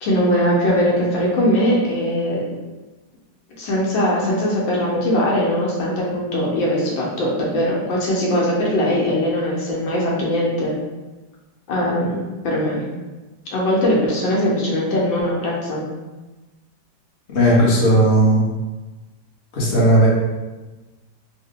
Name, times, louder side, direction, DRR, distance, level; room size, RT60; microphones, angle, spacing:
voice 1, 0.0-2.4 3.6-10.7 11.7-12.8 13.5-15.9, equal, 75° left, -4 dB, 1.5 m, -20 dB
voice 2, 17.3-18.4 19.5-20.1, right 1 dB, 40° left, -6 dB, 0.9 m, -15 dB
3.6 x 2.1 x 3.7 m, 1.2 s
omnidirectional pair, 2.2 m